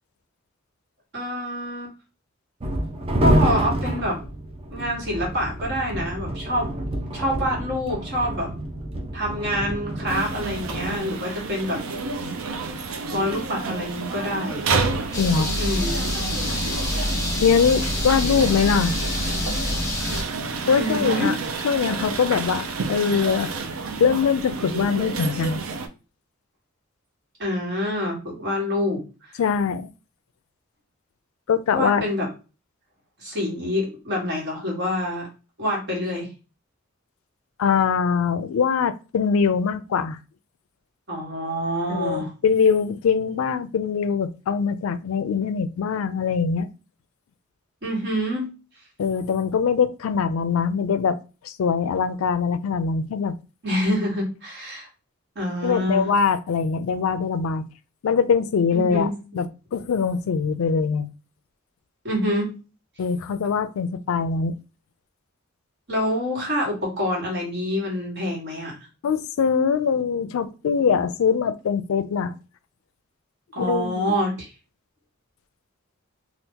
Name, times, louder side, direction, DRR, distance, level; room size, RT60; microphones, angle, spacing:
voice 1, 1.1-1.9 3.2-4.2 4.7-6.7 7.1-8.5 9.1-11.8 13.1-14.7 15.6-16.0 20.6-21.4 27.4-29.4 31.7-32.3 33.2-35.3 35.6-36.3 41.1-42.3 47.8-48.5 53.6-54.9 55.3-56.1 58.7-59.2 62.0-62.5 65.9-68.8 73.5-74.5, equal, 55° right, 1.5 m, -26 dB
sound 1, 2.6-11.0, right 1 dB, 30° right, 0.5 m, -27 dB
sound 2, 10.1-25.9, right 4 dB, 80° right, 0.5 m, -30 dB
sound 3, 15.1-20.2, left 1 dB, 15° left, 0.9 m, -26 dB
voice 2, 15.2-15.5 17.4-19.0 20.7-21.4 21.6-23.5 24.0-25.6 29.4-29.9 31.5-32.1 37.6-40.2 41.9-46.7 49.0-51.2 51.4-53.4 55.6-57.6 58.0-59.1 59.3-59.5 59.7-61.1 63.0-64.6 69.0-72.3 73.6-74.1, left 6 dB, 85° left, 0.4 m, -22 dB
2.8 x 2.4 x 3.5 m
head